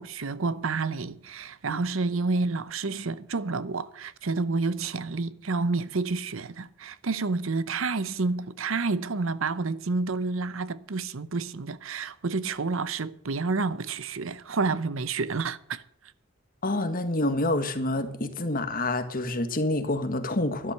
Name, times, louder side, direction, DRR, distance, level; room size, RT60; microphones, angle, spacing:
voice 1, 0.0-15.8, right 3 dB, 75° right, 0.8 m, -29 dB
voice 2, 16.6-20.7, left 2 dB, 45° left, 1.7 m, -27 dB
12.5 x 11.5 x 6.6 m
head